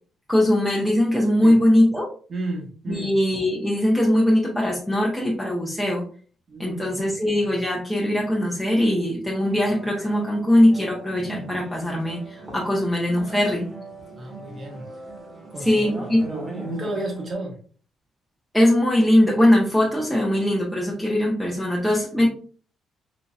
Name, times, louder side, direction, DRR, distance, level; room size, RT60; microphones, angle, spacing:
voice 1, 0.3-2.1 2.9-6.0 6.6-13.7 15.6-16.3 18.5-22.3, left 1 dB, ahead, -4 dB, 0.9 m, -21 dB
voice 2, 2.3-3.1 6.5-7.0 14.1-14.8 15.5-15.9 16.3-17.6 22.2-22.3, right 2 dB, 40° right, 0 dB, 1.4 m, -32 dB
sound 1, 9.2-17.3, right 2 dB, 25° right, 1.5 m, -39 dB
4.0 x 2.8 x 2.4 m, 0.41 s
cardioid pair, 90°, 0 cm